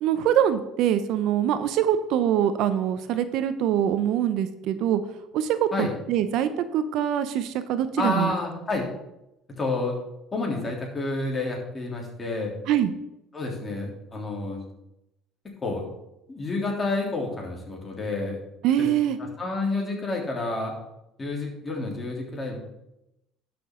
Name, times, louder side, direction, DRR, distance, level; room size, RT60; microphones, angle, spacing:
voice 1, 0.0-5.0 5.3-8.3 12.7-12.9 18.6-19.2, right 10 dB, 70° right, 12 dB, 0.6 m, -24 dB
voice 2, 8.0-8.9 9.5-10.0 10.3-12.5 13.3-14.6 15.6-15.8 16.3-18.4 18.8-18.9 19.2-20.7 21.2-22.6, left 2 dB, 30° left, 0 dB, 3.1 m, -29 dB
12.0 x 6.1 x 3.7 m, 0.88 s
supercardioid pair, 80°, 0 cm